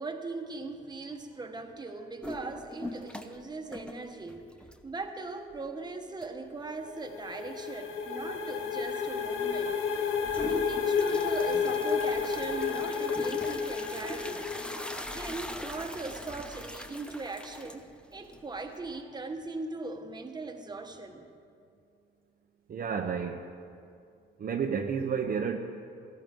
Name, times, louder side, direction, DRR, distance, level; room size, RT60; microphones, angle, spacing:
voice 1, 0.0-4.4 4.8-9.8 10.4-14.5 15.1-17.8 18.1-21.3, right 3 dB, 20° right, 4 dB, 1.2 m, -39 dB
sound 1, 2.2-3.4 3.7-5.1 5.5-5.6 6.2-6.3 10.2-19.0, left 1 dB, 5° left, 0.8 m, -42 dB
sound 2, 6.7-15.4, left 6 dB, 80° left, 1.0 m, -31 dB
voice 2, 22.7-23.4 24.4-25.6, right 6 dB, 45° right, 3 dB, 0.8 m, -30 dB
17.0 x 14.0 x 3.8 m, 2.4 s
cardioid pair, 90°, 20 cm